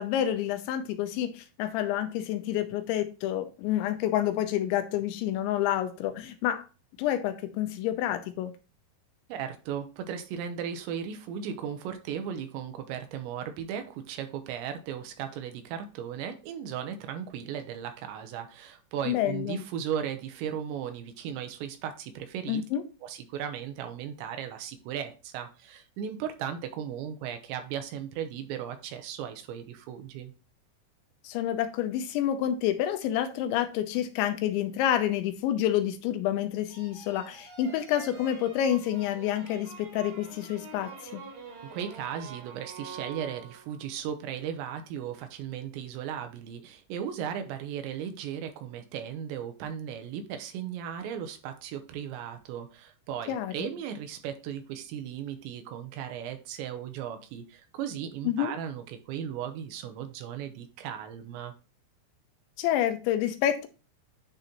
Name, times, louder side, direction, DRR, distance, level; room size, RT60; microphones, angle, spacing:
voice 1, 0.0-6.6 7.0-8.5 19.1-19.6 22.5-22.8 31.2-41.2 53.3-53.7 58.2-58.5 62.6-63.7, left 11 dB, 85° left, 3.1 m, -28 dB
voice 2, 9.3-22.6 23.0-30.3 41.7-61.5, right 8 dB, 85° right, 3.1 m, -36 dB
sound 1, 36.7-43.9, right 6 dB, 60° right, 3.1 m, -46 dB
10.0 x 3.9 x 3.0 m
omnidirectional pair, 5.2 m